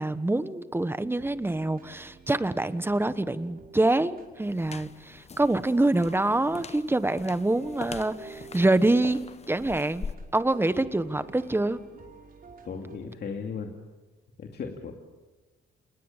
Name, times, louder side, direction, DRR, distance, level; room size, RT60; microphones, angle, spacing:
voice 1, 0.0-9.2 9.5-10.1 10.3-11.8, right 2 dB, 10° right, 13 dB, 1.3 m, -25 dB
sound 1, 1.1-13.0, right 4 dB, 45° right, 5.2 m, -51 dB
sound 2, 4.4-10.1, left 5 dB, 35° left, 1.0 m, -43 dB
voice 2, 12.6-13.7 14.4-15.0, left 5 dB, 55° left, 3 dB, 2.5 m, -36 dB
28.5 x 20.5 x 7.4 m, 1.2 s
cardioid pair, 90°, 20 cm